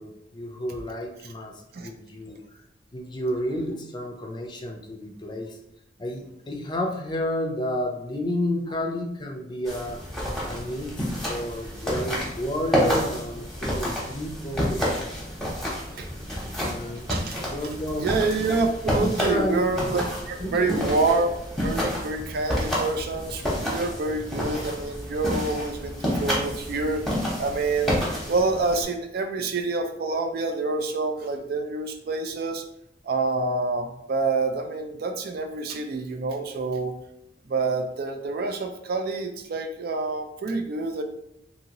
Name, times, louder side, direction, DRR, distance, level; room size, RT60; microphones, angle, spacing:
voice 1, 0.0-1.5 1.8-2.6 2.9-5.6 6.0-10.0 10.4-14.8 15.9-17.1 17.4-18.1 19.0-19.6 20.4-21.0, left 1 dB, 25° left, 1 dB, 0.4 m, -31 dB
sound 1, 9.6-28.8, equal, ahead, 0.9 m, -29 dB
voice 2, 16.9-17.4 18.0-21.3 21.6-27.1 27.4-28.0 28.3-32.6 33.0-36.9 37.5-41.0, right 3 dB, 60° right, 6 dB, 0.4 m, -27 dB
2.8 x 2.7 x 2.8 m, 0.79 s
head